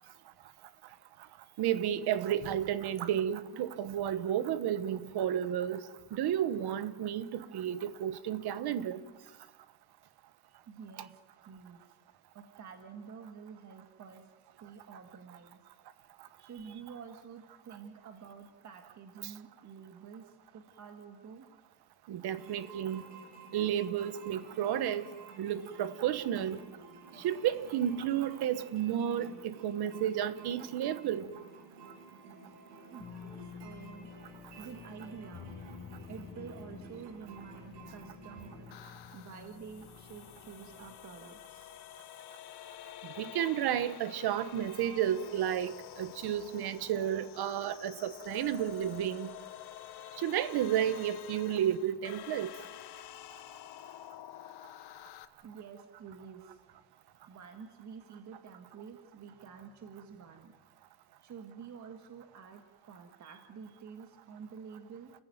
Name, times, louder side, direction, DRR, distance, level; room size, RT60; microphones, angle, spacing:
voice 1, 1.6-5.8 6.1-9.0 22.1-23.0 23.5-25.1 25.4-26.6 27.2-31.3 43.2-49.3 50.2-52.5, right 10 dB, 65° right, 1.3 m, -32 dB
voice 2, 10.7-11.2 11.5-12.0 12.3-14.3 14.6-15.6 16.4-21.5 32.9-34.1 34.6-35.5 36.1-38.8 39.1-41.7 55.4-56.6 57.3-60.5 61.2-65.1, right 6 dB, 40° right, 1.9 m, -49 dB
sound 1, 22.3-38.7, right 3 dB, 90° right, 7.3 m, -53 dB
sound 2, 33.0-41.0, left 7 dB, 30° left, 1.0 m, -50 dB
sound 3, 38.7-55.3, left 13 dB, 70° left, 1.2 m, -49 dB
30.0 x 15.0 x 9.3 m
cardioid pair, 170°, 42 cm